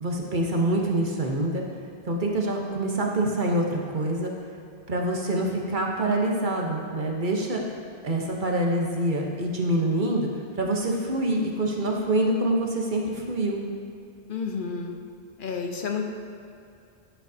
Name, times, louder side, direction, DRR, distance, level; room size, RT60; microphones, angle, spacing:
voice 1, 0.0-1.6 2.0-4.3 4.9-7.6 8.0-10.3 10.6-13.6, right 1 dB, 55° right, 0 dB, 1.1 m, -25 dB
voice 2, 14.3-15.0 15.4-16.0, left 5 dB, 60° left, 3 dB, 0.8 m, -30 dB
12.0 x 8.1 x 2.7 m, 2.5 s
omnidirectional pair, 1.0 m